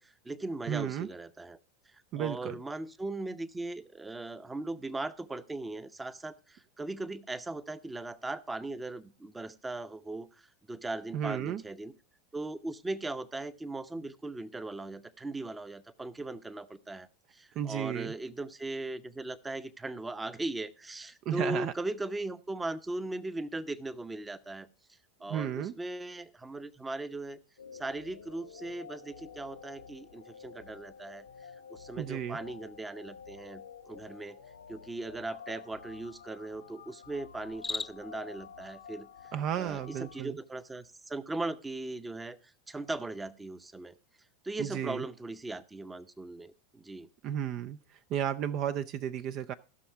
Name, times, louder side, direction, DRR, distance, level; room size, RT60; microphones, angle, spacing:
voice 1, 0.0-1.6 1.9-11.9 12.3-24.7 25.2-27.4 27.7-31.3 31.7-34.4 34.7-43.9 44.4-47.1, right 2 dB, 15° right, 14 dB, 0.8 m, -39 dB
voice 2, 0.7-1.1 2.1-2.5 11.1-11.6 17.6-18.1 21.3-21.7 25.3-25.7 32.0-32.4 39.3-40.4 44.6-45.0 47.2-47.8 48.1-49.5, right 10 dB, 45° right, 12 dB, 0.5 m, -33 dB
sound 1, 27.6-40.2, left 6 dB, 90° left, 1.2 m, -50 dB
Cricket, 37.4-38.2, left 3 dB, 15° left, 0.4 m, -37 dB
15.0 x 6.2 x 4.5 m, 0.35 s
hypercardioid pair, 90°, 0 cm